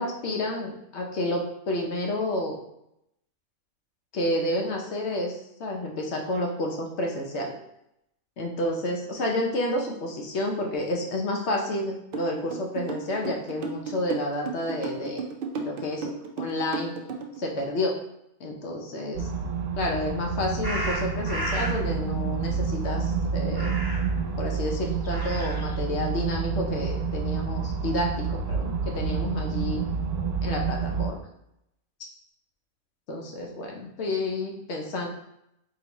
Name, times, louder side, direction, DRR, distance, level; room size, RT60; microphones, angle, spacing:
voice 1, 0.0-2.6 4.1-7.6 8.4-15.2 15.5-16.1 16.4-16.9 17.4-18.0 18.4-19.3 19.8-23.7 24.4-29.8 30.4-31.2 33.1-35.1, left 1 dB, 60° left, 1 dB, 0.8 m, -30 dB
sound 1, 12.1-17.4, right 4 dB, 70° right, 0.5 m, -33 dB
sound 2, 19.2-31.1, right 5 dB, 90° right, 1.1 m, -29 dB
sound 3, 20.6-21.8 23.5-24.2 24.9-25.8, equal, 25° right, 0.6 m, -33 dB
4.0 x 2.9 x 2.9 m, 0.81 s
omnidirectional pair, 1.5 m